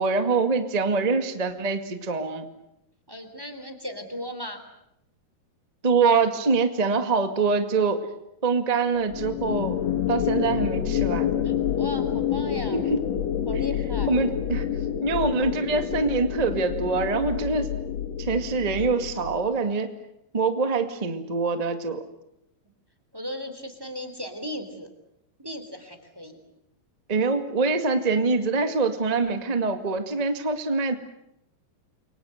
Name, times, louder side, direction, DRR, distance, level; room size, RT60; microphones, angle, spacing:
voice 1, 0.0-2.4 5.8-8.0 8.4-9.8 10.1-11.5 12.7-13.0 14.1-14.7 15.0-17.7 18.2-19.9 20.3-22.0 27.1-30.9, right 4 dB, 65° right, 7 dB, 0.4 m, -24 dB
voice 2, 3.1-4.6 11.4-12.9 13.4-14.1 23.1-24.9 25.4-26.4, equal, 5° right, 7 dB, 2.9 m, -36 dB
sound 1, 9.1-19.5, left 10 dB, 55° left, 2.1 m, -28 dB
30.0 x 24.0 x 8.0 m, 0.79 s
omnidirectional pair, 4.8 m